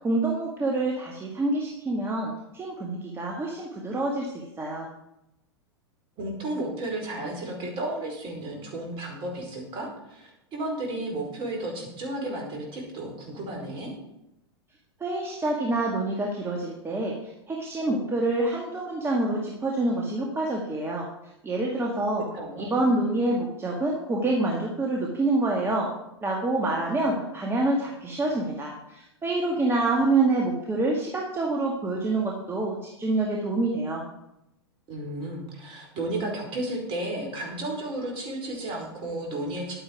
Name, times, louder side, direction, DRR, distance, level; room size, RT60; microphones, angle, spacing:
voice 1, 0.0-4.9 15.0-21.1 21.4-22.2 22.6-25.9 26.2-34.0, right 2 dB, 15° right, -1 dB, 2.0 m, -27 dB
voice 2, 6.2-13.9 22.3-22.7 34.9-39.8, right 1 dB, 35° right, 0 dB, 4.8 m, -33 dB
11.5 x 9.3 x 4.8 m, 0.86 s
hypercardioid pair, 100°, 14 cm